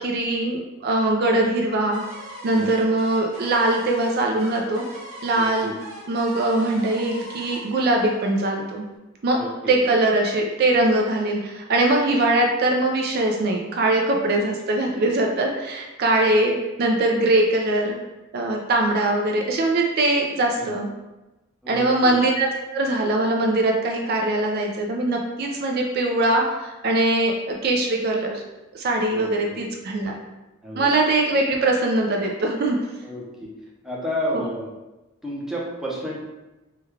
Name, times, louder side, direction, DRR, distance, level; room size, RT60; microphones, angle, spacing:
voice 1, 0.0-2.0 2.4-4.8 5.2-5.7 6.1-8.9 9.2-9.4 9.7-18.0 18.3-20.9 21.7-28.4 28.7-30.1 30.8-32.8 34.3-34.5, right 2 dB, 50° right, 1 dB, 0.4 m, -22 dB
sound 1, 1.9-8.9, equal, 90° right, 1.3 m, -41 dB
voice 2, 5.3-5.7 9.4-9.8 20.6-20.7 21.6-22.2 29.1-29.6 30.6-30.9 33.0-33.5 33.8-34.7 35.2-36.2, equal, ahead, -5 dB, 0.6 m, -31 dB
3.4 x 2.2 x 3.1 m, 1.0 s
head